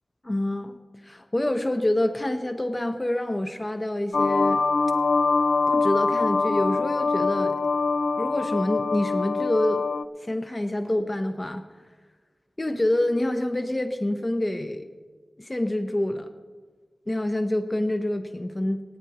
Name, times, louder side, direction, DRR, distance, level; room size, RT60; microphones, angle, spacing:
voice 1, 0.2-4.6 5.7-7.6 8.2-9.8 10.2-11.6 12.6-14.9 15.4-16.3 17.1-18.8, left 1 dB, 30° left, 7 dB, 0.8 m, -27 dB
sound 1, 4.1-10.0, left 4 dB, 80° left, 0.4 m, -24 dB
27.0 x 9.6 x 3.0 m, 1.4 s
cardioid pair, 50°, 0 cm